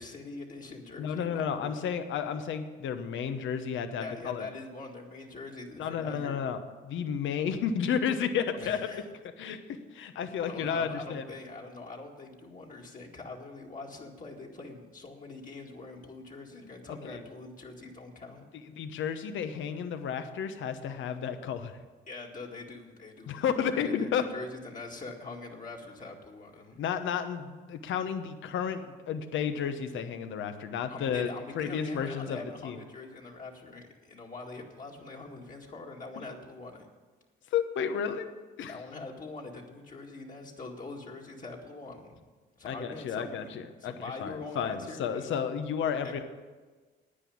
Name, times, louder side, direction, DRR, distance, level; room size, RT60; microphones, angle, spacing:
voice 1, 0.0-1.8 4.0-6.5 8.6-9.0 10.4-18.5 22.1-26.8 30.9-36.9 38.7-42.2 42.6-43.5 43.8-45.3 46.0-46.2, left 3 dB, 40° left, -1 dB, 2.0 m, -43 dB
voice 2, 1.0-4.5 5.8-6.6 6.8-8.9 9.4-11.2 16.9-17.2 18.8-21.7 23.3-24.3 26.8-28.8 29.1-31.3 31.6-32.4 32.6-32.8 37.5-38.3 38.6-38.7 42.6-43.9 44.2-46.2, left 7 dB, 80° left, 9 dB, 1.0 m, -32 dB
10.0 x 9.4 x 8.6 m, 1.4 s
cardioid pair, 90°, 20 cm